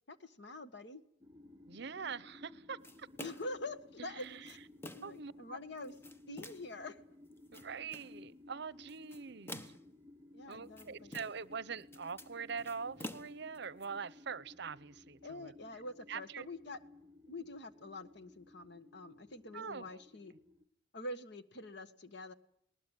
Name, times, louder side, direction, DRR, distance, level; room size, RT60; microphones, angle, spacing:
voice 1, 0.1-1.0 3.2-4.6 4.9-5.9 6.3-7.0 10.3-11.1 15.2-16.8 17.3-20.3 20.9-22.3, left 2 dB, 65° left, 1.6 m, -46 dB
sound 1, 1.2-20.6, left 2 dB, 15° right, 1.6 m, -58 dB
voice 2, 1.7-3.1 4.0-4.5 5.0-5.6 7.5-9.8 10.5-15.5 16.1-16.5 19.5-20.0, right 5 dB, 60° right, 0.8 m, -44 dB
sound 2, 2.8-3.6 4.2-5.2 5.8-6.8 7.3-8.2 8.9-9.9 10.5-11.5 11.8-13.9, left 1 dB, 15° left, 1.1 m, -49 dB
20.0 x 20.0 x 9.1 m
head